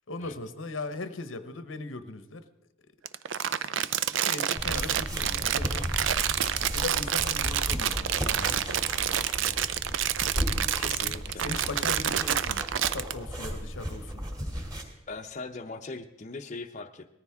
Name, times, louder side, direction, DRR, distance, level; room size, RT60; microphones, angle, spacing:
voice 1, 0.1-2.4 3.3-5.9 6.7-9.6 11.3-14.2, left 3 dB, 90° left, 10 dB, 1.0 m, -39 dB
Crumpling crinkling, 3.0-13.1, right 10 dB, 70° right, 0.5 m, -28 dB
sound 1, 4.6-14.8, equal, 20° right, 2.2 m, -35 dB
voice 2, 10.8-11.5 15.1-17.1, left 3 dB, 40° left, 5 dB, 0.7 m, -40 dB
19.0 x 14.0 x 3.6 m, 0.86 s
head